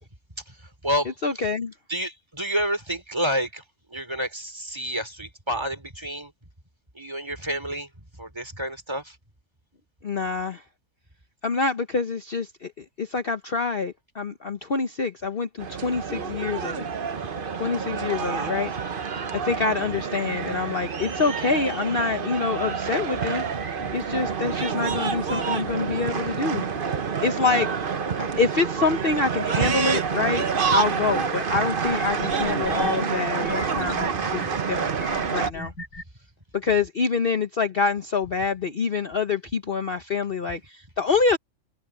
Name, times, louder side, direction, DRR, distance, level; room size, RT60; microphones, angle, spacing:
voice 1, 0.5-1.5 1.9-3.6 3.9-6.3 6.9-9.2 23.8-23.9 34.5-34.6, equal, 15° right, 3.3 m, -30 dB
voice 2, 1.2-1.7 10.0-10.6 11.4-16.9 17.6-18.7 19.3-23.4 23.9-26.7 27.2-27.7 28.2-30.4 30.7-34.4 34.7-34.9 35.3-35.7 36.5-41.4, left 4 dB, 40° left, 1.1 m, -26 dB
sound 1, 15.6-35.5, right 6 dB, 40° right, 1.1 m, -28 dB
sound 2, 31.3-31.4 31.8-32.9 33.4-34.5 35.0-36.0, equal, 85° left, 2.8 m, -38 dB
omnidirectional pair, 1.6 m